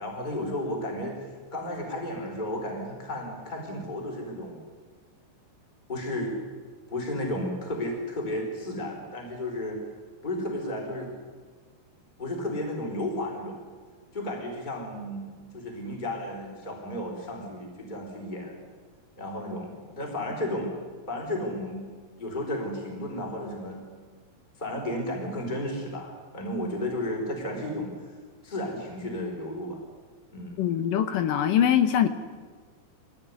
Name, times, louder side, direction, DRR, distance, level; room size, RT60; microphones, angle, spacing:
voice 1, 0.0-4.6 5.9-6.4 6.9-9.8 10.2-11.1 12.2-13.6 14.1-18.6 19.2-20.7 21.1-21.8 22.2-23.8 24.6-28.0 28.4-29.8 30.3-30.6, left 1 dB, 10° left, 0 dB, 4.5 m, -33 dB
voice 2, 30.6-32.1, left 10 dB, 70° left, 10 dB, 2.4 m, -23 dB
24.0 x 18.0 x 9.8 m, 1.5 s
omnidirectional pair, 4.7 m